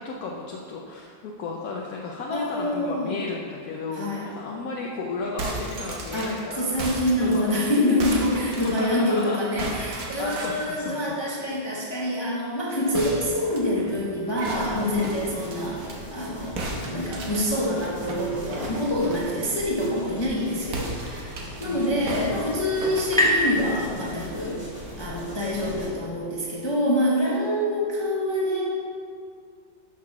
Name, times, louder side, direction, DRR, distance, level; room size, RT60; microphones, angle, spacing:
voice 1, 0.0-6.7 7.2-7.6 8.6-9.4 10.2-11.1 21.6-22.1 25.4-25.9, left 3 dB, 65° left, -2 dB, 1.0 m, -34 dB
voice 2, 2.3-3.2 3.9-4.3 6.1-24.6 25.0-28.6, left 1 dB, 40° left, -4 dB, 0.3 m, -26 dB
sound 1, 5.2-9.2 9.6-10.8 12.9-16.0 16.6-19.4 20.7-21.7 22.1-23.9, right 2 dB, 55° right, 1.4 m, -35 dB
sound 2, 14.4-25.9, left 1 dB, 40° right, 2.5 m, -40 dB
sound 3, 21.7-25.1, left 1 dB, ahead, 1.3 m, -28 dB
6.1 x 6.0 x 5.8 m, 2.2 s
omnidirectional pair, 2.1 m